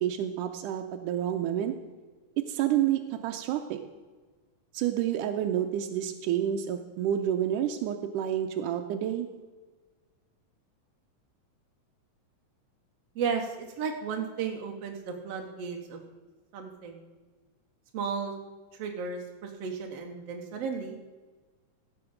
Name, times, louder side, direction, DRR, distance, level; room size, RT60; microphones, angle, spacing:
voice 1, 0.0-1.7 2.5-3.8 4.7-9.3, right 10 dB, 90° right, 5 dB, 2.2 m, -29 dB
voice 2, 13.2-16.1 16.5-17.1 17.9-18.4 18.7-21.0, right 6 dB, 65° right, 2 dB, 1.8 m, -34 dB
16.5 x 7.0 x 5.1 m, 1.3 s
omnidirectional pair, 3.5 m